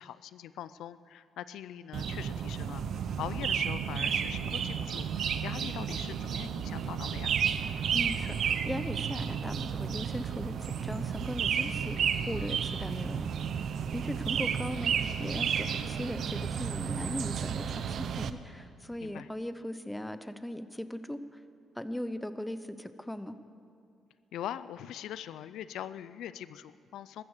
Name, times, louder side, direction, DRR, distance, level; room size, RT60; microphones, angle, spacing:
voice 1, 0.0-7.4 12.6-12.8 19.0-19.3 24.3-27.2, left 11 dB, 80° left, 15 dB, 0.4 m, -42 dB
sound 1, 1.9-18.3, right 7 dB, 65° right, 0.7 m, -32 dB
voice 2, 7.9-12.0 12.3-13.3 13.9-21.4 21.8-23.4, left 1 dB, 5° left, 12 dB, 0.8 m, -38 dB
14.0 x 13.5 x 6.6 m, 2.5 s
cardioid pair, 90°, 0 cm